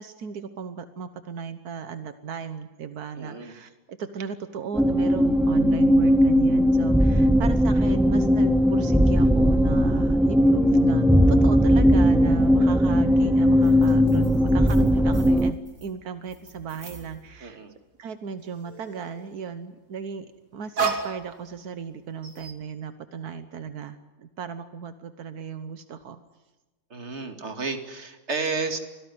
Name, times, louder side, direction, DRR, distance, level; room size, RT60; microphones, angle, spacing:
voice 1, 0.0-17.6 18.0-20.3 20.5-26.2, right 6 dB, 85° right, 10 dB, 1.6 m, -36 dB
voice 2, 3.2-3.5 17.4-17.7 26.9-28.8, right 4 dB, 45° right, 6 dB, 2.5 m, -31 dB
sound 1, 4.7-15.5, equal, ahead, 0.4 m, -19 dB
sound 2, 13.6-17.9 18.1-19.4 20.1-21.9 22.2-22.5, right 5 dB, 65° right, 3.3 m, -36 dB
25.5 x 17.0 x 9.6 m, 1.1 s
omnidirectional pair, 1.6 m